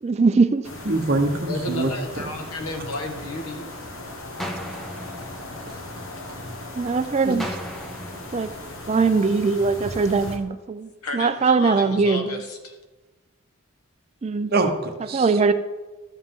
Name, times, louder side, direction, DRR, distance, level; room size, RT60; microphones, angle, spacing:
voice 1, 0.0-0.7 6.7-7.5 8.3-8.5 8.9-12.4 14.2-14.5 15.1-15.5, right 4 dB, 30° right, 11 dB, 0.3 m, -21 dB
sound 1, 0.6-10.4, left 2 dB, 65° left, 1.3 m, -38 dB
voice 2, 0.9-1.9 2.3-2.4 7.2-7.4 14.5-15.3, right 2 dB, 45° right, 5 dB, 0.9 m, -24 dB
voice 3, 1.4-3.7 7.3-7.4 11.0-12.8, left 2 dB, 90° left, 4 dB, 1.4 m, -33 dB
sound 2, 4.4-6.5 7.4-9.5, equal, ahead, 0.7 m, -37 dB
12.5 x 7.3 x 3.7 m, 1.2 s
head